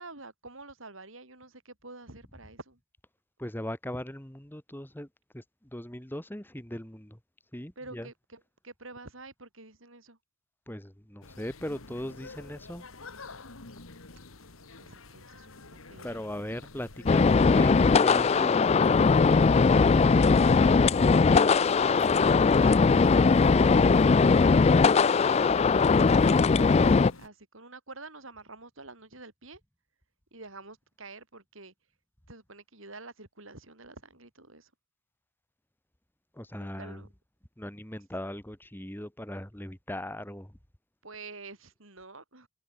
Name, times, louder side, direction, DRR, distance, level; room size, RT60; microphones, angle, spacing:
voice 1, 0.0-2.8 7.8-10.2 14.8-16.1 21.6-22.8 23.3-25.2 25.4-29.6 30.3-31.7 32.3-34.7 36.5-37.1 41.0-42.5, right 3 dB, 70° right, 6.2 m, -47 dB
voice 2, 3.4-5.1 5.3-5.4 5.7-7.2 7.5-8.1 10.7-12.8 16.0-20.5 36.4-37.0 37.6-40.5, left 1 dB, 10° left, 1.7 m, -39 dB
sound 1, 11.2-27.3, left 3 dB, 75° left, 2.1 m, -47 dB
sound 2, 17.1-27.1, left 4 dB, 30° left, 0.3 m, -20 dB
head